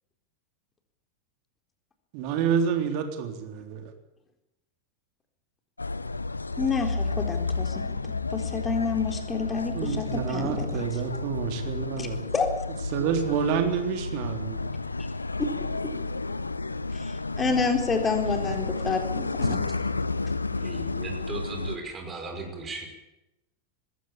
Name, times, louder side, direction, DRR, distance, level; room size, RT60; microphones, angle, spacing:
voice 1, 2.1-3.9 9.7-12.2 12.9-14.6, right 7 dB, 45° right, 6 dB, 3.6 m, -28 dB
sound 1, 5.8-21.8, left 3 dB, 80° left, 0.9 m, -31 dB
voice 2, 6.6-7.8 8.3-10.8 12.0-12.1 12.3-12.5 17.0-19.6, left 4 dB, 15° left, 5 dB, 4.1 m, -28 dB
voice 3, 20.6-22.9, right 3 dB, 20° right, 4 dB, 5.2 m, -37 dB
20.5 x 16.5 x 8.7 m, 0.92 s
figure-of-eight pair, 90°, 0 cm